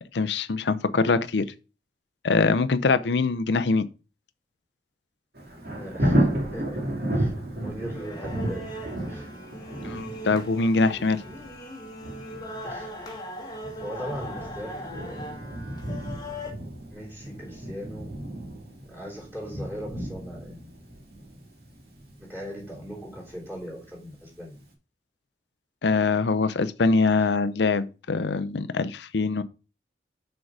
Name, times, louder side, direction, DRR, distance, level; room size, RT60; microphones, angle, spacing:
voice 1, 0.1-1.5 2.2-3.9 9.8-11.2 25.8-29.4, left 4 dB, 80° left, 0.6 m, -23 dB
Thunder, 5.3-24.1 24.6-24.7, right 1 dB, 60° right, 2.3 m, -33 dB
voice 2, 5.7-6.8 7.1-8.7 9.1-9.3 12.6-12.9 13.8-15.6 16.9-18.1 18.9-20.7 22.2-24.6, equal, 15° right, 3.3 m, -39 dB
sound 1, 7.9-16.5, left 1 dB, 20° left, 1.2 m, -39 dB
6.5 x 4.6 x 4.8 m
head